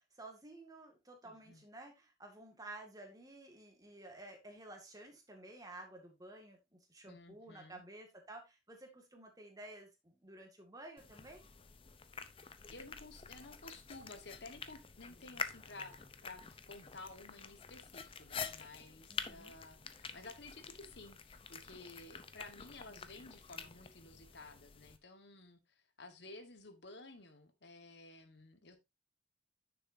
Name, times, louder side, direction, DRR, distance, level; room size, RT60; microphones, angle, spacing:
voice 1, 0.0-11.4 19.1-19.6, right 2 dB, 20° right, 2.0 m, -53 dB
voice 2, 1.2-1.6 7.1-7.8 12.7-28.8, left 2 dB, 65° left, 1.5 m, -54 dB
sound 1, 11.0-25.0, left 6 dB, 30° left, 0.7 m, -48 dB
9.9 x 6.8 x 2.7 m
head